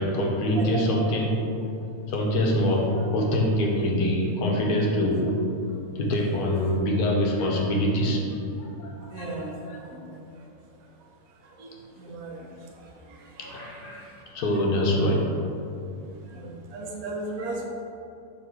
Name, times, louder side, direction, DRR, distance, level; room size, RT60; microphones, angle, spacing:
voice 1, 0.0-1.4 2.1-5.3 6.0-8.2 8.6-8.9 9.2-9.3 9.7-9.8 13.4-14.1 14.3-15.3, left 1 dB, 85° left, -1 dB, 1.2 m, -24 dB
voice 2, 9.1-9.5 12.1-12.3 13.5-13.6 16.7-17.7, right 3 dB, 80° right, 0 dB, 1.1 m, -33 dB
3.9 x 2.7 x 4.4 m, 2.6 s
omnidirectional pair, 1.6 m